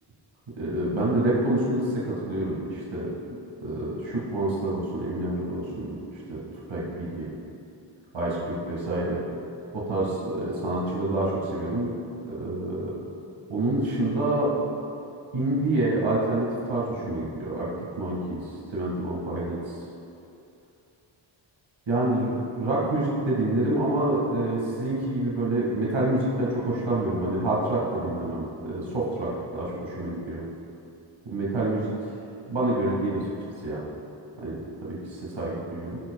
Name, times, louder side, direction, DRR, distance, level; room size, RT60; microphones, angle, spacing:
voice 1, 0.6-6.0 6.3-6.4 6.7-7.3 8.1-9.2 9.7-11.9 12.2-12.9 13.5-14.5 15.3-17.7 18.0-19.8 21.9-30.4 31.3-31.9 32.4-33.2 33.6-33.8 34.4-34.5 34.8-36.0, right 1 dB, 85° right, -6 dB, 2.0 m, -27 dB
16.5 x 7.2 x 2.3 m, 2.7 s
wide cardioid pair, 125°, 46 cm